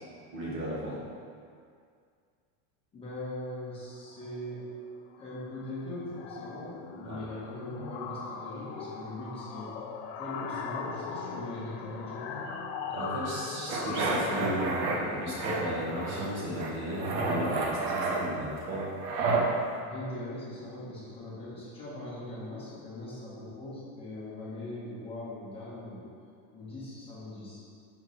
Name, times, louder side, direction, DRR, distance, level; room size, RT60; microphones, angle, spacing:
voice 1, 0.3-1.0 7.0-7.2 12.9-18.9, right 1 dB, 25° right, -7 dB, 1.5 m, -35 dB
voice 2, 2.9-4.6 5.2-9.7 10.2-12.5 19.8-26.0 26.5-27.6, left 1 dB, 10° left, -10 dB, 1.3 m, -40 dB
sound 1, 4.0-4.3 4.6-4.8 5.1-20.0, left 5 dB, 50° left, 0.6 m, -41 dB
sound 2, 13.7-15.0 15.4-16.3 16.6-19.5, right 3 dB, 85° right, 1.0 m, -30 dB
6.3 x 5.8 x 3.2 m, 2.2 s
supercardioid pair, 175°, 46 cm